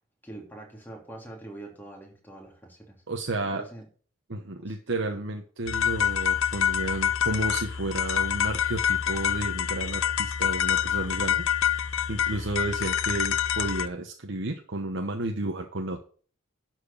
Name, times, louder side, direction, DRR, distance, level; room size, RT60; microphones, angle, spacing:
voice 1, 0.2-3.0 3.5-3.9 4.6-4.8 5.0-5.2, right 2 dB, 10° left, 0 dB, 3.1 m, -44 dB
voice 2, 3.1-3.7 4.3-16.0, right 2 dB, 60° right, 3 dB, 1.1 m, -32 dB
sound 1, 5.7-13.9, left 9 dB, 80° left, 0.6 m, -26 dB
11.5 x 4.6 x 7.0 m, 0.43 s
head